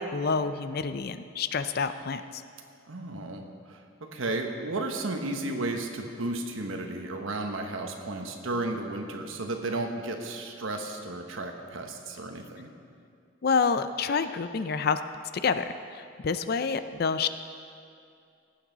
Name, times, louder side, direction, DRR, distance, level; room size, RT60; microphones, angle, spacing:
voice 1, 0.0-2.2 13.4-15.0 15.4-15.6 15.9-17.3, left 5 dB, 50° left, 11 dB, 0.4 m, -28 dB
voice 2, 2.9-3.4 3.7-3.8 4.1-12.7, right 2 dB, 75° right, 4 dB, 1.2 m, -33 dB
18.0 x 8.7 x 4.1 m, 2.4 s
head